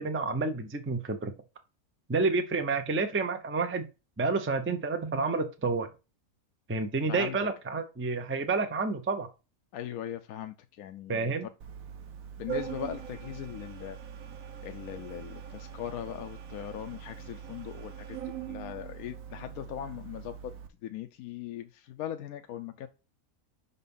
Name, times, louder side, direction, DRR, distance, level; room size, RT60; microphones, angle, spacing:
voice 1, 0.0-1.3 2.1-3.9 4.2-5.9 6.7-9.3 11.1-11.5, right 3 dB, 15° right, 0.4 m, -29 dB
voice 2, 7.1-7.5 9.7-11.3 12.4-14.0 14.6-18.2 18.5-20.5 20.8-22.9, left 11 dB, 75° left, 1.0 m, -39 dB
Organ, 11.6-20.7, right 8 dB, 70° right, 1.2 m, -42 dB
5.7 x 4.1 x 5.4 m
omnidirectional pair, 1.6 m